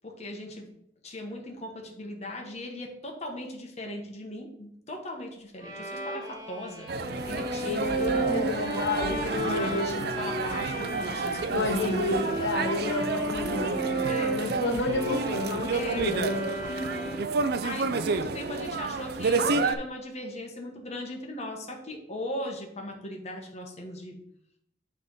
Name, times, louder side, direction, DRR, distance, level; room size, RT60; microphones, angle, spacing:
voice 1, 0.0-0.7 1.0-8.3 8.9-12.4 14.0-14.4 15.7-16.1 16.7-17.2 17.6-24.2, left 1 dB, 40° left, 1 dB, 1.2 m, -38 dB
Bowed string instrument, 5.6-17.5, right 2 dB, 25° right, 1.2 m, -34 dB
sound 1, 6.9-19.8, right 4 dB, 60° right, 0.5 m, -30 dB
voice 2, 7.6-10.0 11.5-16.4, left 2 dB, 80° left, 3 dB, 0.8 m, -30 dB
7.4 x 3.5 x 5.4 m, 0.75 s
head